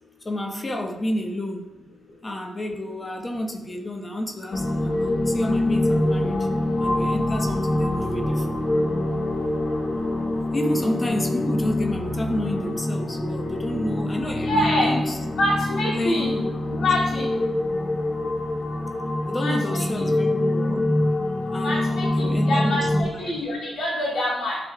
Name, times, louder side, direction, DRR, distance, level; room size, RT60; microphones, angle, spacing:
voice 1, 0.2-1.7 2.2-5.0 5.3-6.5 6.8-8.6 10.5-15.2 15.9-16.5 16.8-16.9 19.3-20.8 21.5-23.4, left 1 dB, 30° left, 4 dB, 1.0 m, -30 dB
sound 1, 4.5-23.0, left 1 dB, 50° left, 1.2 m, -25 dB
voice 2, 14.4-15.0 15.4-16.3 16.7-17.3 19.4-20.1 21.6-24.6, left 1 dB, 75° left, -5 dB, 2.6 m, -26 dB
10.5 x 5.3 x 2.4 m, 0.99 s
cardioid pair, 65°, 0 cm